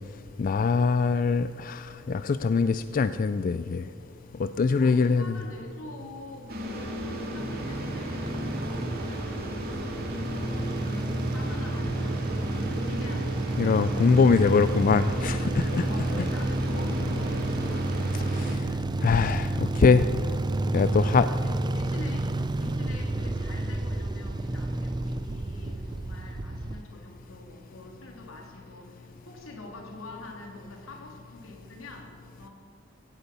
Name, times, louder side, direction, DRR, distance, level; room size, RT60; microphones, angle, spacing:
voice 1, 0.4-3.9 4.4-5.3 13.6-15.9 18.3-18.6 19.0-20.1 20.7-21.3, left 4 dB, 40° left, 12 dB, 0.3 m, -23 dB
voice 2, 4.8-11.0 11.3-13.4 15.8-17.9 18.2-18.6 20.9-22.3 22.6-32.1 32.4-32.5, left 2 dB, 85° left, 1 dB, 3.3 m, -45 dB
sound 1, 6.5-18.6, equal, 50° right, 2.4 m, -35 dB
sound 2, 7.4-26.8, right 2 dB, 20° right, 0.4 m, -30 dB
16.5 x 15.0 x 5.6 m, 2.6 s
head